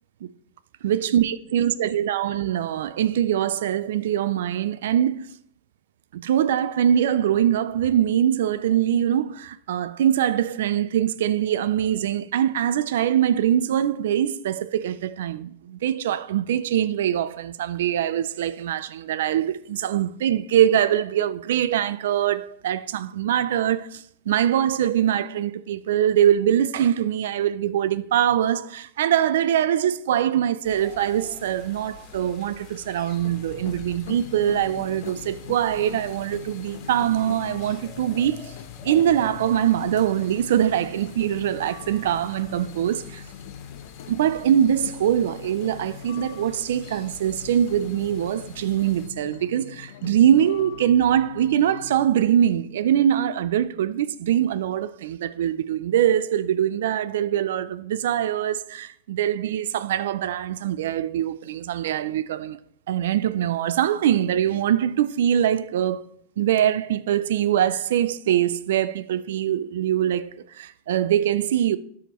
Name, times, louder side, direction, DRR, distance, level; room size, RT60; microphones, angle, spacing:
voice 1, 0.8-5.3 6.1-38.5 38.8-43.2 44.1-62.6 62.9-66.0 66.4-71.8, right 10 dB, 85° right, 0.4 m, -23 dB
sound 1, 30.6-49.1, left 6 dB, 55° left, 1.6 m, -47 dB
sound 2, 33.1-52.1, left 8 dB, 80° left, 0.6 m, -42 dB
13.0 x 4.9 x 3.0 m
supercardioid pair, 125°, 0 cm